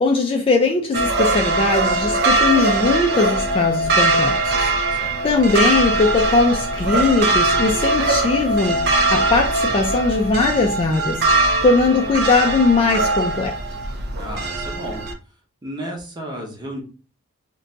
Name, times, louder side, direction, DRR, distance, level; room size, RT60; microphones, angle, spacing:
voice 1, 0.0-13.6, left 3 dB, 25° left, 0.3 m, -20 dB
sound 1, 0.9-15.1, right 2 dB, 50° right, 0.4 m, -21 dB
voice 2, 14.1-15.0 15.6-16.8, right 1 dB, 20° right, 0.8 m, -32 dB
2.6 x 2.2 x 3.8 m
head